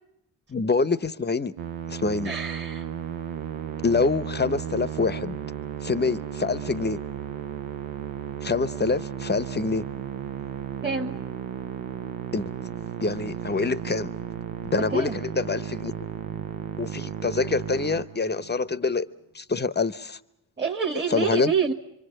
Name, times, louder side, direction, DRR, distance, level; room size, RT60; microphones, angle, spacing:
voice 1, 0.5-1.5 1.9-2.3 3.8-5.4 5.8-7.0 8.4-9.8 12.3-12.5 13.0-14.1 14.7-15.9 16.8-19.1 19.3-20.2 21.1-21.5, left 4 dB, 20° left, 0.8 m, -25 dB
Musical instrument, 1.6-18.7, right 9 dB, 70° right, 0.8 m, -34 dB
voice 2, 2.2-2.8 10.8-11.2 14.7-15.2 20.6-21.7, right 5 dB, 20° right, 1.5 m, -27 dB
25.5 x 24.5 x 6.5 m
supercardioid pair, 45°, 48 cm